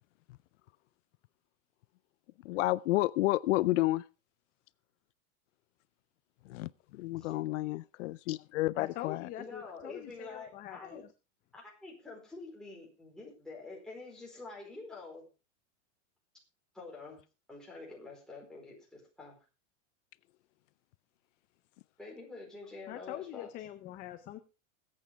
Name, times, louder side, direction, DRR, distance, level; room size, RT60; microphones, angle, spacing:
voice 1, 2.4-4.0 6.4-9.3, left 18 dB, 75° left, 0.5 m, -30 dB
voice 2, 8.8-11.1 22.9-24.4, left 13 dB, 25° left, 0.6 m, -43 dB
voice 3, 9.4-11.0 11.5-15.3 16.7-17.2 17.5-19.4 22.0-23.5, left 3 dB, ahead, 4.4 m, -47 dB
21.5 x 8.6 x 3.5 m
supercardioid pair, 170°, 36 cm